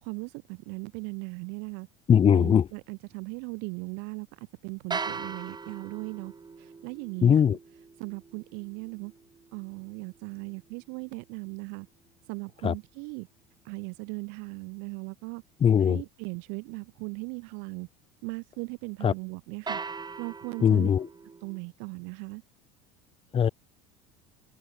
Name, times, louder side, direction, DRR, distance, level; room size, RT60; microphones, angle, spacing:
voice 1, 0.0-1.9 2.3-6.3 6.6-7.6 8.0-9.1 9.5-11.9 12.3-13.3 13.6-15.4 15.8-17.9 18.2-19.8 20.2-20.9 21.4-22.4, right 37 dB, 70° right, 2.5 m, -38 dB
voice 2, 2.1-2.6 7.2-7.6 12.6-12.7 15.6-16.0 19.0-19.1 20.6-21.1 23.3-23.5, left 8 dB, 30° left, 0.7 m, -20 dB
sound 1, 4.9-11.0 19.7-21.6, right 4 dB, 20° right, 4.6 m, -40 dB
hypercardioid pair, 80°, 19 cm